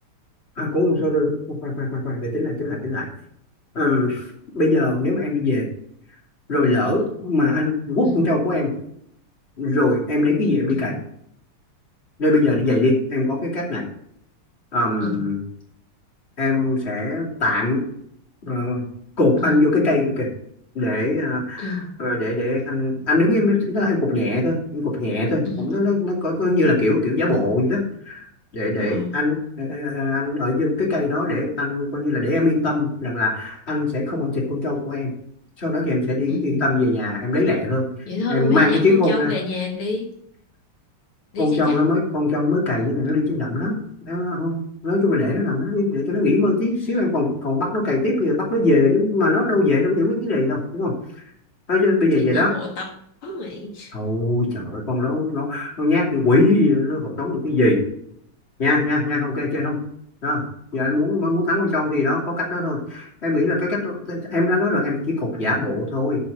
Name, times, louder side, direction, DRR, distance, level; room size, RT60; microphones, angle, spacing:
voice 1, 0.6-3.1 3.7-4.2 4.5-5.7 6.5-8.7 9.6-11.0 12.2-13.8 14.7-15.4 16.4-17.8 18.4-18.9 19.2-20.3 20.7-28.3 28.5-35.1 35.6-37.9 38.3-39.3 41.4-50.9 51.7-52.5 53.9-57.8 58.6-59.8 60.2-60.4 60.7-66.3, left 2 dB, 30° left, -2 dB, 3.0 m, -21 dB
voice 2, 15.0-15.3 19.4-19.7 21.6-21.9 25.4-26.0 26.6-26.7 28.8-29.1 36.3-36.6 38.1-40.1 41.3-41.8 46.9-47.0 52.1-52.9 53.2-53.9, left 3 dB, 75° left, 1 dB, 2.5 m, -29 dB
7.8 x 6.7 x 6.9 m, 0.69 s
omnidirectional pair, 2.4 m